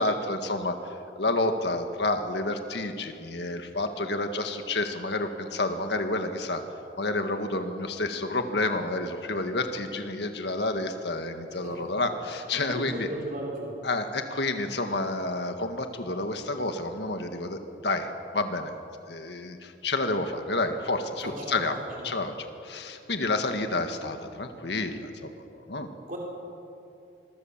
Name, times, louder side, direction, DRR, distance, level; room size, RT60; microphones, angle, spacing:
voice 1, 0.0-6.6 7.0-13.1 13.8-18.7 19.1-21.7 22.0-25.3 25.7-25.9, left 2 dB, 70° left, 6 dB, 1.8 m, -29 dB
voice 2, 12.7-13.8 21.2-21.7 22.0-22.2 26.1-26.2, right 1 dB, 45° right, -2 dB, 4.5 m, -36 dB
26.5 x 23.0 x 7.5 m, 2.6 s
head